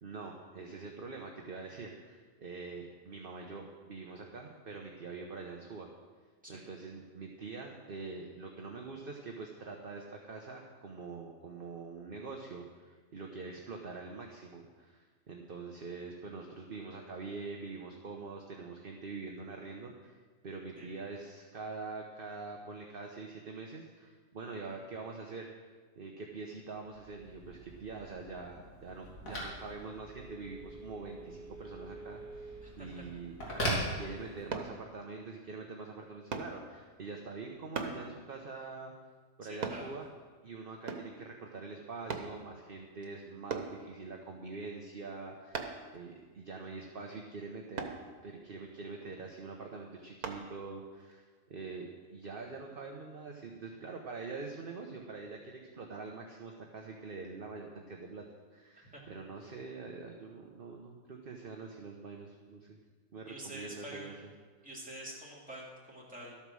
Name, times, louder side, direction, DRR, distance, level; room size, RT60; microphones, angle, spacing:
voice 1, 0.0-5.9 6.5-25.5 26.0-33.4 33.6-38.9 39.4-40.1 40.4-47.9 48.2-62.8 63.1-64.3, right 4 dB, 45° right, 1 dB, 1.1 m, -45 dB
Telephone, 26.9-34.7, equal, 70° left, 3.3 m, -41 dB
sound 1, 34.5-34.7 36.3-36.5 37.7-38.0 39.6-39.8 40.9-41.2 42.1-42.3 43.5-43.7 45.5-45.9 47.8-48.0 50.2-50.4 51.0-51.1, right 5 dB, 90° right, 1.6 m, -37 dB
voice 2, 39.4-39.9 58.8-59.0 63.3-64.2 64.6-66.3, right 1 dB, 5° right, -6 dB, 3.1 m, -47 dB
13.0 x 8.9 x 6.3 m, 1.4 s
omnidirectional pair, 1.5 m